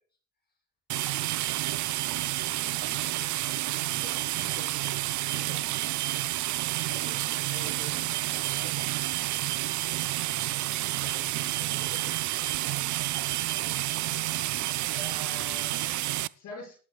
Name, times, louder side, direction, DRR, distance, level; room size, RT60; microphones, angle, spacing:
voice 1, 0.9-1.4 2.5-4.8 5.2-5.9 7.5-9.3 11.0-12.5, left 3 dB, 35° left, 0 dB, 7.6 m, -50 dB
sound 1, 0.9-16.3, right 16 dB, 75° right, 0.5 m, -30 dB
voice 2, 6.9-7.4 10.3-10.6 14.9-16.8, left 1 dB, 70° left, 0 dB, 6.6 m, -45 dB
18.5 x 11.5 x 2.4 m, 0.38 s
cardioid pair, 90°, 30 cm